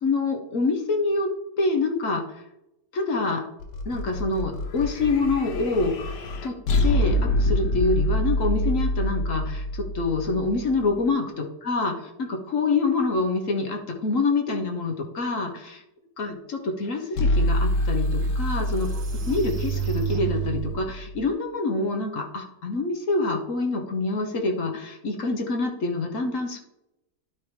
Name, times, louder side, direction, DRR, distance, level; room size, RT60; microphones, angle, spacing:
voice 1, 0.0-1.3 1.6-2.2 2.9-3.4 3.9-5.9 6.4-6.6 6.8-11.9 12.2-15.8 16.2-18.9 19.3-26.6, left 3 dB, 55° left, 3 dB, 1.3 m, -26 dB
sound 1, 3.6-10.9 17.2-21.3, left 1 dB, 80° left, 1.5 m, -26 dB
sound 2, 17.1-17.2 17.8-20.9, right 16 dB, 85° right, 0.5 m, -32 dB
12.0 x 4.7 x 3.3 m, 0.89 s
omnidirectional pair, 1.8 m